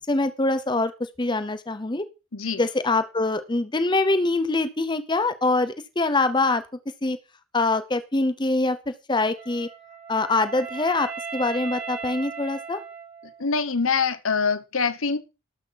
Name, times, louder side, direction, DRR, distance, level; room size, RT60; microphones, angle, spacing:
voice 1, 0.1-2.0 2.6-6.6 7.0-7.2 7.5-9.7 10.1-12.8, left 2 dB, 20° left, 0.8 m, -24 dB
Wind instrument woodwind instrument, 9.3-13.5, right 5 dB, 35° right, 2.4 m, -37 dB
voice 2, 13.4-15.2, left 5 dB, 70° left, 1.1 m, -24 dB
12.5 x 6.5 x 5.7 m
head